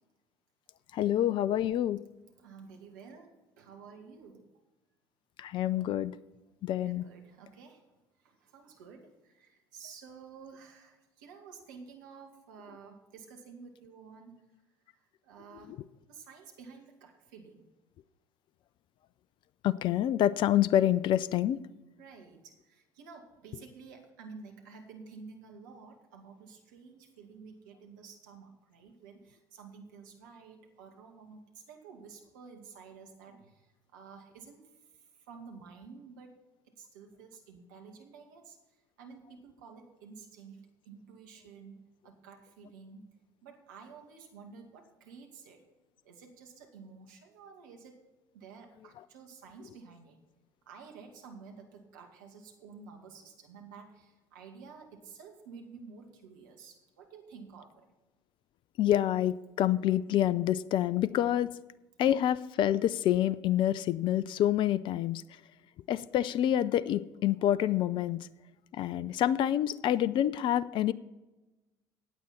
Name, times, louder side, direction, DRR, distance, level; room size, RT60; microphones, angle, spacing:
voice 1, 0.9-2.0 5.4-6.1 6.6-7.0 19.6-21.6 58.8-61.5 62.0-65.2 65.9-68.2 68.7-70.9, left 11 dB, 50° left, 18 dB, 0.5 m, -27 dB
voice 2, 2.4-4.5 6.8-7.8 8.2-14.4 14.9-15.7 16.1-17.7 22.0-34.6 35.3-36.4 36.8-38.6 39.0-43.1 43.4-45.6 46.0-48.0 48.3-50.2 50.7-57.9, right 5 dB, 75° right, 3 dB, 2.1 m, -51 dB
15.5 x 9.0 x 4.3 m, 1.0 s
hypercardioid pair, 60°, 10 cm